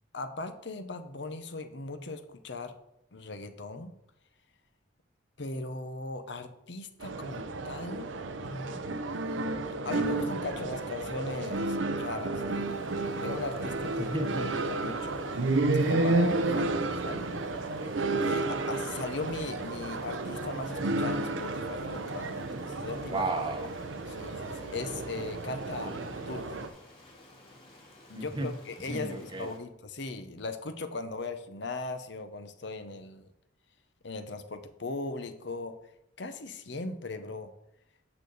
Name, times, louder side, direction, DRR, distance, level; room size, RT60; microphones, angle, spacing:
voice 1, 0.1-2.7 3.1-3.9 5.4-8.1 8.4-8.9 9.8-12.9 13.2-14.1 14.7-15.2 15.7-17.3 18.2-23.3 24.1-26.6 28.1-33.3 34.0-35.8 36.2-37.5, left 3 dB, 65° left, 8 dB, 0.8 m, -38 dB
sound 1, 7.0-26.7, right 2 dB, 80° right, 0.7 m, -32 dB
Stream, 12.7-29.6, left 1 dB, 25° left, 2.2 m, -54 dB
voice 2, 14.0-14.6 16.5-16.8 23.1-23.7 25.8-26.1 28.1-28.5 28.9-29.5, right 2 dB, 25° right, 5 dB, 0.9 m, -34 dB
8.9 x 6.6 x 4.0 m, 0.80 s
head